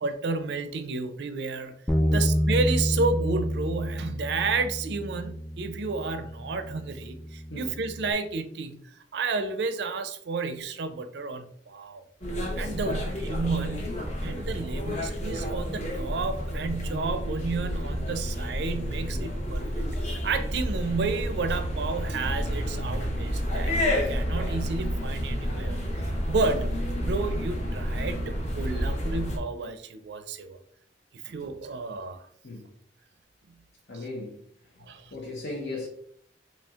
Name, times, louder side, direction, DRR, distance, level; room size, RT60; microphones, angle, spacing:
voice 1, 0.0-1.7 2.1-12.0 12.6-25.8 26.3-26.7 27.0-30.6 31.2-32.3 34.9-35.1, right 4 dB, 70° right, 0.4 m, -31 dB
Bass guitar, 1.9-8.1, equal, 5° left, 0.3 m, -29 dB
sound 1, 12.2-29.4, equal, 40° left, 0.9 m, -30 dB
voice 2, 12.8-13.1 14.2-14.5 19.1-19.3 26.4-26.6 32.4-32.7 33.9-34.4 34.7-35.9, left 2 dB, 75° left, 0.7 m, -38 dB
4.3 x 3.0 x 2.4 m
head